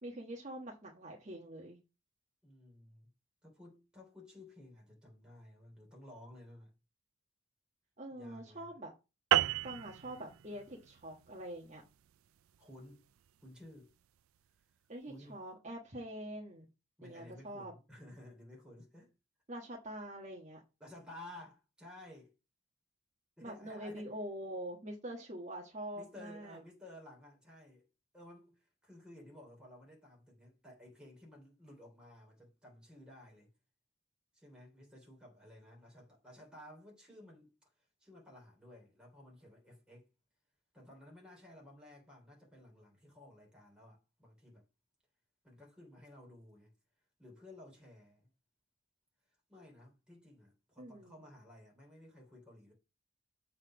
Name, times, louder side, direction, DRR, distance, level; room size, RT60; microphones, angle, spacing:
voice 1, 0.0-1.8 8.0-8.9 9.6-11.8 14.9-16.7 17.0-17.7 19.5-20.6 23.4-26.6 50.8-51.1, right 1 dB, 35° right, 1.4 m, -45 dB
voice 2, 2.4-3.1 3.4-6.7 8.1-8.8 12.6-13.1 13.4-13.9 15.1-15.4 17.0-19.1 20.8-22.3 23.4-24.1 25.9-27.9 28.1-33.5 34.3-40.1 40.7-44.6 45.4-46.7 47.2-48.3 49.5-52.7, left 1 dB, 5° right, 3.3 m, -55 dB
sound 1, 9.3-14.0, right 12 dB, 85° right, 0.4 m, -35 dB
7.6 x 4.2 x 6.1 m
head